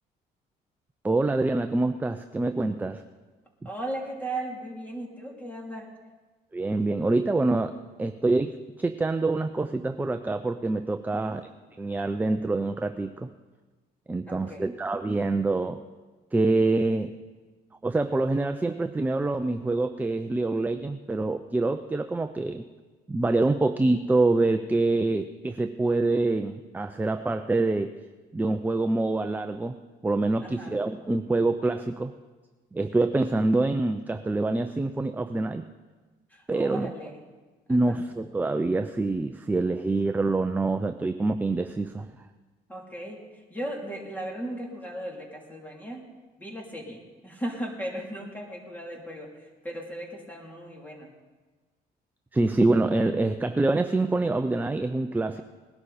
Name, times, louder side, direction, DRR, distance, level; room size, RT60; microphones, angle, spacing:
voice 1, 1.0-3.0 6.5-11.4 11.8-13.3 14.1-15.8 16.3-17.1 17.8-22.6 23.1-27.9 28.3-29.8 30.0-32.1 32.7-35.6 36.5-36.9 37.7-42.1 52.3-55.4, right 2 dB, 10° right, 8 dB, 0.5 m, -26 dB
voice 2, 3.6-5.9 11.2-11.5 14.3-14.7 30.4-30.8 36.3-37.2 37.7-38.0 42.7-46.0 46.4-51.1, right 1 dB, 10° left, -1 dB, 3.2 m, -37 dB
20.0 x 11.5 x 4.3 m, 1.3 s
cardioid pair, 110°, 17 cm